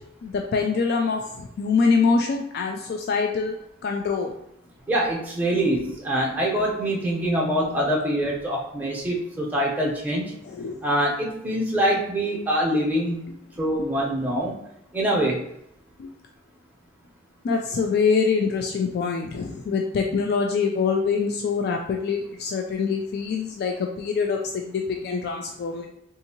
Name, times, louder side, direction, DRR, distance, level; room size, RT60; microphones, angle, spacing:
voice 1, 0.2-3.5 3.8-4.3 10.5-10.8 16.0-16.1 17.4-25.9, left 5 dB, 55° left, 3 dB, 0.3 m, -24 dB
voice 2, 4.9-10.3 10.8-13.3 13.6-14.6 14.9-15.4, right 1 dB, 10° right, -3 dB, 0.8 m, -24 dB
3.6 x 2.6 x 2.8 m, 0.78 s
head